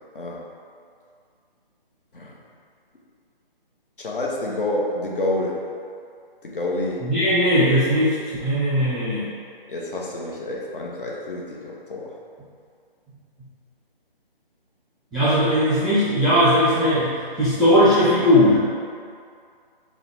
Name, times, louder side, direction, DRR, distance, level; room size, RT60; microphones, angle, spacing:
voice 1, 4.0-5.6 6.4-7.1 9.7-12.2, left 1 dB, 65° left, -3 dB, 1.0 m, -28 dB
voice 2, 7.0-9.3 15.1-18.6, equal, ahead, -15 dB, 0.3 m, -18 dB
6.5 x 2.2 x 3.4 m, 2.2 s
hypercardioid pair, 170°, 29 cm